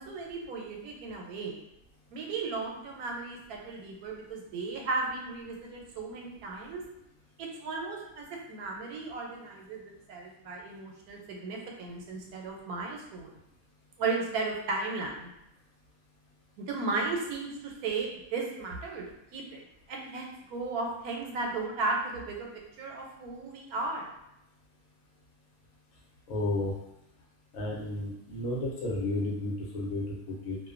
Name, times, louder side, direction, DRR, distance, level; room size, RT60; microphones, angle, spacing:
voice 1, 0.0-1.5 2.1-6.8 7.4-13.4 14.0-15.3 16.6-19.0 19.3-19.6 19.9-22.5 22.8-24.1, right 3 dB, 85° right, 0 dB, 1.1 m, -35 dB
voice 2, 26.3-26.7 27.5-30.6, left 2 dB, 70° left, -4 dB, 1.1 m, -32 dB
2.5 x 2.2 x 2.4 m, 0.83 s
omnidirectional pair, 1.5 m